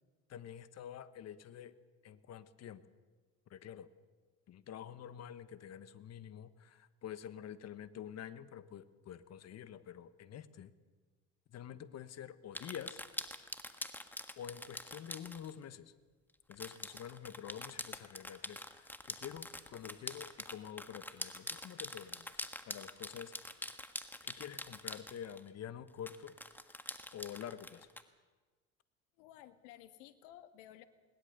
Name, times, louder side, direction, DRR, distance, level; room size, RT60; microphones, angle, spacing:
voice 1, 0.3-1.7 2.0-2.8 3.5-3.9 4.5-10.7 11.5-13.0 14.4-15.9 16.5-22.3 22.7-23.3 24.2-26.3 27.1-27.9, left 9 dB, 45° left, 14 dB, 1.3 m, -48 dB
sound 1, 12.5-15.5 16.5-25.5 26.1-28.0, left 1 dB, 5° left, 1.5 m, -45 dB
voice 2, 29.2-30.9, left 12 dB, 75° left, 10 dB, 1.6 m, -55 dB
21.0 x 20.0 x 6.8 m, 1.3 s
hypercardioid pair, 75°, 36 cm